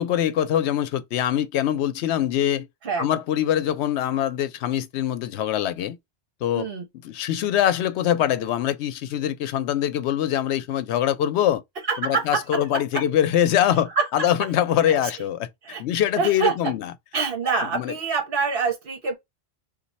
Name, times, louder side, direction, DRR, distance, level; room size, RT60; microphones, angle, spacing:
voice 1, 0.0-2.7 3.0-6.0 6.4-6.7 7.0-11.6 12.0-15.5 15.8-16.9 17.7-17.9, left 11 dB, 90° left, 0.8 m, -23 dB
voice 2, 6.5-6.8 11.8-13.0 14.0-14.3 14.9-15.0 15.6-15.8 16.2-16.7 17.1-19.1, right 5 dB, 60° right, 1.2 m, -26 dB
3.0 x 2.4 x 4.0 m
omnidirectional pair, 1.1 m